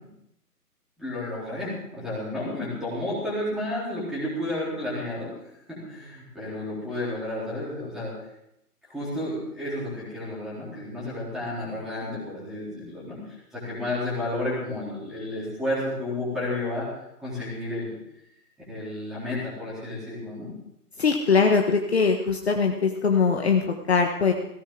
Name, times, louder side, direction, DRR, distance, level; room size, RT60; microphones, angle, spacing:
voice 1, 1.0-5.3 5.7-8.1 8.8-16.9 17.2-18.0 18.7-20.5, left 1 dB, ahead, -8 dB, 3.8 m, -31 dB
voice 2, 21.0-24.3, left 5 dB, 40° left, 3 dB, 1.4 m, -22 dB
17.0 x 16.5 x 3.8 m, 0.79 s
figure-of-eight pair, 160°, 48 cm